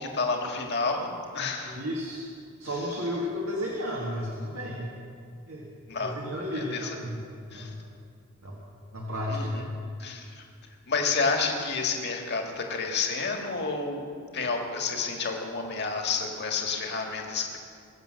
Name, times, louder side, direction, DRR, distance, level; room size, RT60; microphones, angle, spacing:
voice 1, 0.0-1.8 5.9-6.1 6.6-7.0 7.5-7.7 9.3-9.7 10.0-10.4 10.9-14.1 14.3-17.6, left 4 dB, 50° left, 2 dB, 1.8 m, -30 dB
voice 2, 1.6-2.3 2.6-4.9 5.5-5.7 6.0-7.8 8.4-8.6 8.9-9.7, equal, 70° right, -3 dB, 1.9 m, -33 dB
23.0 x 7.7 x 6.4 m, 2.3 s
head